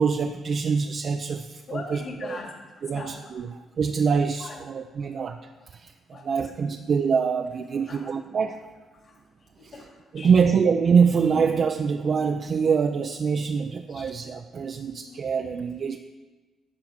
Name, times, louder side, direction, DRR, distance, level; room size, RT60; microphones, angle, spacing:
voice 1, 0.0-2.4 2.8-8.6 9.6-9.7 10.1-16.0, right 6 dB, 50° right, 5 dB, 0.5 m, -25 dB
voice 2, 1.7-3.1 4.4-4.6 6.1-6.5 7.7-8.1 9.0-10.5 11.3-11.4 12.2-12.3 13.9-14.2 14.5-14.8, left 3 dB, 50° left, 1 dB, 2.5 m, -41 dB
11.5 x 4.7 x 7.9 m, 1.3 s
cardioid pair, 90°, 0 cm